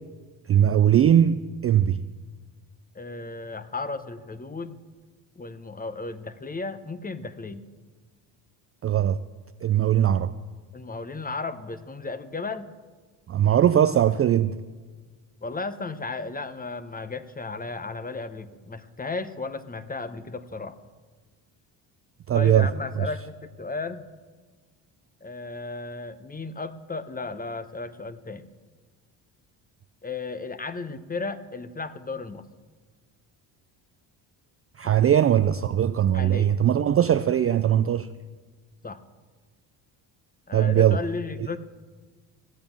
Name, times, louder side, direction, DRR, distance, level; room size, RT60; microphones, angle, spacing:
voice 1, 0.5-2.0 8.8-9.2 9.6-10.3 13.3-14.5 22.3-22.7 34.8-38.1 40.5-41.0, right 10 dB, 30° right, 0.4 m, -20 dB
voice 2, 2.9-4.8 5.4-7.6 10.7-12.7 15.4-20.8 22.3-24.1 25.2-28.5 30.0-32.5 34.8-35.0 36.1-36.5 38.8-39.0 40.5-41.6, left 3 dB, 20° left, 0.9 m, -34 dB
16.0 x 8.7 x 7.1 m
supercardioid pair, 80°, 48 cm